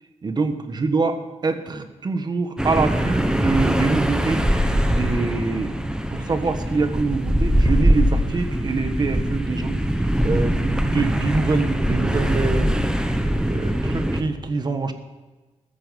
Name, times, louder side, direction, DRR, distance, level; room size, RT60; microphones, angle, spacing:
voice 1, 0.2-1.2 1.4-4.7 5.0-5.7 6.1-9.8 10.2-12.8 13.4-14.9, right 4 dB, 35° right, 8 dB, 1.4 m, -25 dB
sound 1, 2.6-14.2, equal, 5° right, 1.2 m, -22 dB
14.5 x 14.0 x 5.4 m, 1.2 s
wide cardioid pair, 145°, 12 cm